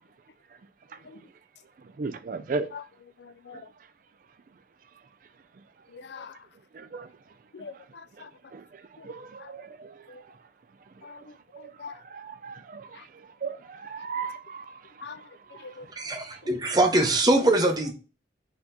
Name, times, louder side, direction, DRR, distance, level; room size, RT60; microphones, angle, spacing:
voice 1, 0.9-1.2 1.8-2.7 3.5-3.7 6.7-7.1 7.6-7.9 8.2-10.4 11.0-16.4, right 4 dB, 50° right, 0.4 m, -38 dB
voice 2, 3.2-3.6 5.9-6.4 7.5-8.3 9.0-9.1 9.4-9.5 10.1-10.2 11.0-11.2 11.8-12.0 13.0-13.1 15.0-15.2 15.6-15.9 17.6-17.7, left 5 dB, 75° left, 0.4 m, -43 dB
voice 3, 16.0-17.9, right 2 dB, 20° right, 0.7 m, -22 dB
4.2 x 2.9 x 3.8 m
head